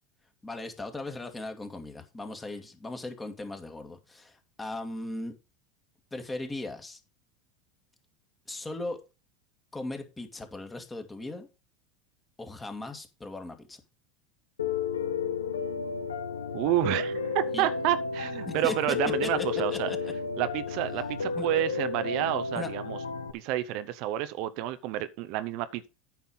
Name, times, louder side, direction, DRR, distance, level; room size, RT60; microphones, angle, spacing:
voice 1, 0.4-5.3 6.1-7.0 8.5-9.0 9.7-11.5 12.4-13.8 17.5-17.7 18.5-19.0 19.2-20.1 21.3-21.5 22.5-22.7, left 2 dB, 15° left, 2.2 m, -38 dB
Piano, 14.6-23.3, left 5 dB, 85° left, 0.8 m, -32 dB
voice 2, 16.5-19.9 20.4-23.0 23.3-25.9, right 13 dB, 60° right, 0.7 m, -29 dB
9.3 x 5.8 x 5.5 m
hypercardioid pair, 85°, 0 cm